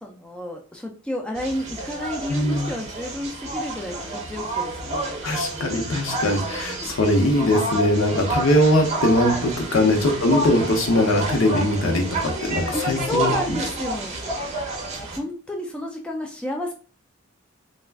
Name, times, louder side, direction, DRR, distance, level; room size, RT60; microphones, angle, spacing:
voice 1, 0.0-4.0 4.3-5.2 6.8-6.9 9.9-10.2 12.7-14.2 14.8-16.7, equal, 5° left, 1 dB, 0.3 m, -31 dB
wildwood jillyshandbag, 1.4-15.2, right 2 dB, 35° right, 0.6 m, -29 dB
voice 2, 2.3-2.7 5.2-13.3, left 1 dB, 70° left, 3 dB, 0.6 m, -21 dB
2.4 x 2.1 x 3.3 m, 0.38 s
head